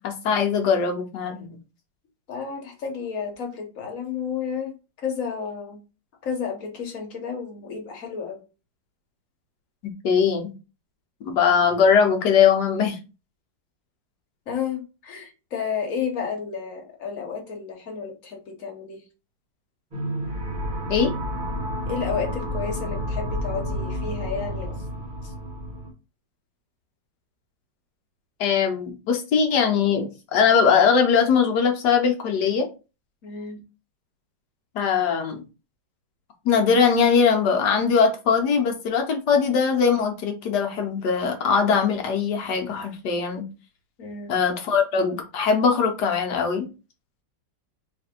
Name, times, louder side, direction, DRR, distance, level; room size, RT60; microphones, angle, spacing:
voice 1, 0.0-1.6 10.0-10.5 11.2-13.0 20.9-21.1 28.4-32.7 34.7-35.4 36.4-43.4 44.3-46.7, left 6 dB, 70° left, 4 dB, 1.4 m, -21 dB
voice 2, 2.3-4.7 5.0-5.8 6.2-8.4 14.5-19.0 21.9-24.8 25.2-25.3 33.2-33.6 44.0-44.3, left 6 dB, 50° left, 2 dB, 1.5 m, -31 dB
sound 1, 19.9-25.9, equal, 25° right, 1.7 m, -30 dB
3.3 x 3.3 x 4.4 m, 0.31 s
omnidirectional pair, 1.9 m